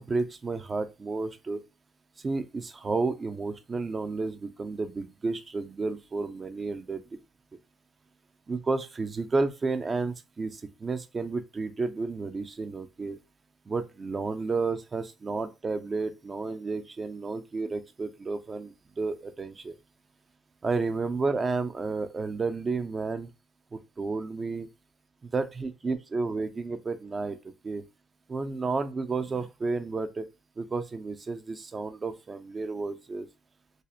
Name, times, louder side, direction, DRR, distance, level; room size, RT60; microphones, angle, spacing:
voice 1, 0.0-1.6 2.2-7.0 8.5-13.2 13.7-19.7 20.6-23.3 23.7-24.7 25.2-27.4 27.6-27.8 28.3-30.3 30.6-33.3, right 3 dB, 35° right, 0.4 m, -31 dB
2.7 x 2.0 x 2.4 m
supercardioid pair, 70°, 0 cm